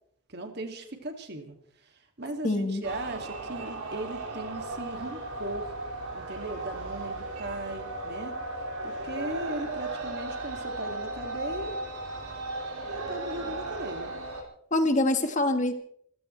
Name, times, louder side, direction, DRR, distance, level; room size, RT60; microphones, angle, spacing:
voice 1, 0.3-1.5 1.8-5.7 6.1-8.4 8.8-11.8 12.9-14.1, right 2 dB, 50° right, 4 dB, 2.4 m, -38 dB
voice 2, 2.4-2.8 14.7-15.7, left 2 dB, 35° left, 7 dB, 1.6 m, -25 dB
sound 1, 2.8-14.4, right 2 dB, 90° right, 5.4 m, -36 dB
27.0 x 15.5 x 3.3 m, 0.66 s
head